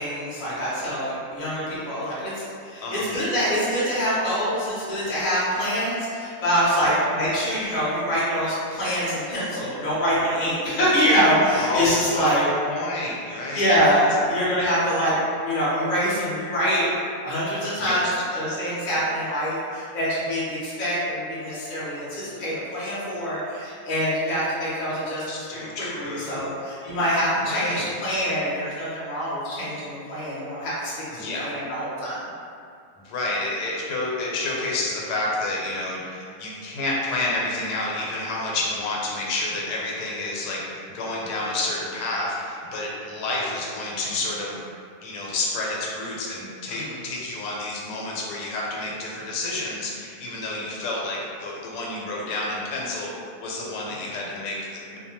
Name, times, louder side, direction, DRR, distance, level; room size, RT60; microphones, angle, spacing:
voice 1, 0.0-12.4 13.3-15.2 15.4-16.9 17.2-32.3 46.7-47.0 53.9-54.0, equal, 40° left, -8 dB, 0.6 m, -25 dB
voice 2, 11.6-12.3 12.7-13.7 14.2-14.3 14.6-14.7 17.8-18.1 25.3-26.5 27.4-27.9 31.1-31.5 33.0-40.6 40.9-44.6 45.0-53.1 53.4-55.0, left 2 dB, 85° left, -3 dB, 1.2 m, -29 dB
2.7 x 2.2 x 2.8 m, 2.3 s
omnidirectional pair, 1.7 m